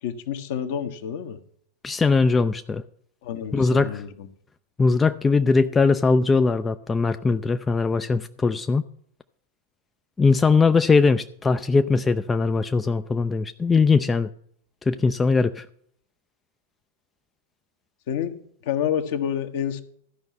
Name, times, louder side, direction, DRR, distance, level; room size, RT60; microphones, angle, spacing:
voice 1, 0.0-1.4 3.2-4.3 18.1-18.4 18.6-19.8, left 9 dB, 50° left, 9 dB, 1.0 m, -28 dB
voice 2, 1.8-2.8 3.5-3.9 4.8-8.8 10.2-14.3 14.9-15.6, left 4 dB, 15° left, 10 dB, 0.4 m, -20 dB
13.0 x 5.4 x 7.2 m, 0.65 s
figure-of-eight pair, 95°, 0 cm